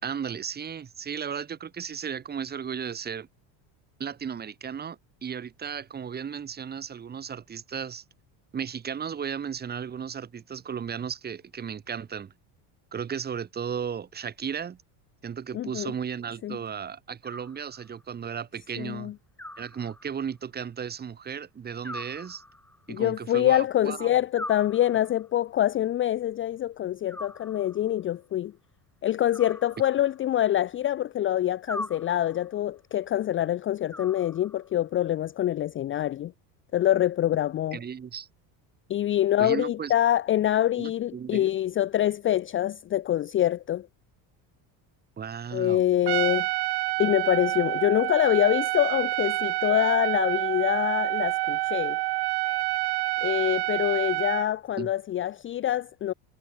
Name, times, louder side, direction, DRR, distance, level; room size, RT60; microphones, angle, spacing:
voice 1, 0.0-3.3 4.0-8.0 8.5-12.3 12.9-14.8 15.2-19.1 19.6-22.4 22.9-24.1 37.7-38.3 39.4-39.9 40.8-41.5 45.2-45.8 54.8-54.9, right 7 dB, 20° right, 1.9 m, -35 dB
voice 2, 15.5-15.9 16.4-16.6 18.8-19.1 22.9-28.5 29.0-36.3 36.7-37.8 38.9-43.9 45.5-46.5 47.0-52.0 53.2-56.1, left 12 dB, 25° left, 0.6 m, -25 dB
Animal, 17.2-18.1 19.4-20.4 21.8-22.9 24.3-25.4 27.1-28.0 29.3-30.4 31.7-32.6 33.9-34.8, left 1 dB, 5° left, 5.8 m, -42 dB
Trumpet, 46.1-54.5, right 21 dB, 55° right, 2.7 m, -28 dB
cardioid pair, 165°, 46 cm